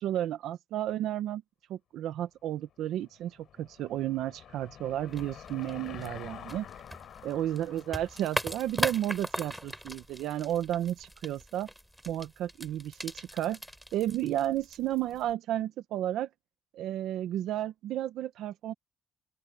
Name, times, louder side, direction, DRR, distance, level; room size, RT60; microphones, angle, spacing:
voice 1, 0.0-1.4 1.7-6.7 7.2-11.7 12.0-13.6 13.9-16.3 16.7-18.7, right 12 dB, 85° right, 1.2 m, -32 dB
Car passing by / Engine, 2.8-9.6, left 10 dB, 70° left, 5.5 m, -49 dB
sound 1, 5.1-15.3, equal, ahead, 6.5 m, -40 dB
open air
cardioid pair, 90°, 0 cm